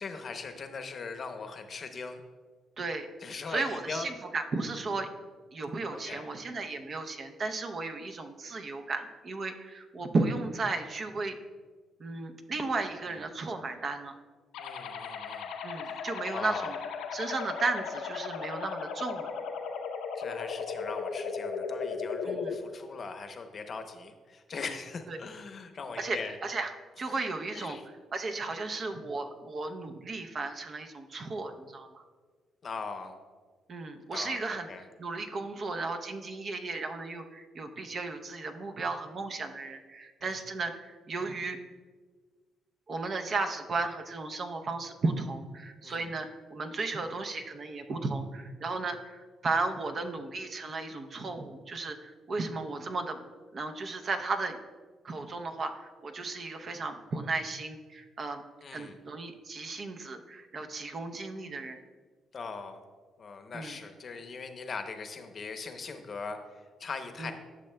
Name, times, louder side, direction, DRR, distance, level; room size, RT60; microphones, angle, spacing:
voice 1, 0.0-2.2 3.2-4.1 5.9-6.3 13.0-13.2 14.6-15.5 15.8-16.0 16.3-16.8 20.2-26.4 27.5-27.8 32.6-33.2 34.1-34.8 40.2-40.4 45.8-46.1 58.6-59.0 62.3-62.8 63.2-67.3, left 4 dB, 45° left, 7 dB, 0.7 m, -40 dB
voice 2, 2.8-3.1 3.5-5.1 5.5-11.4 12.0-14.2 15.6-16.8 17.1-19.3 22.2-22.5 25.1-25.2 26.0-27.8 28.1-32.0 33.7-34.7 35.0-41.6 42.9-53.2 53.5-54.6 55.0-58.4 58.7-61.8 63.5-63.8 67.2-67.3, right 3 dB, 45° right, 6 dB, 0.6 m, -34 dB
sound 1, 14.5-22.5, left 5 dB, 90° left, 0.6 m, -36 dB
12.0 x 6.4 x 2.2 m, 1.5 s
cardioid pair, 90°, 0 cm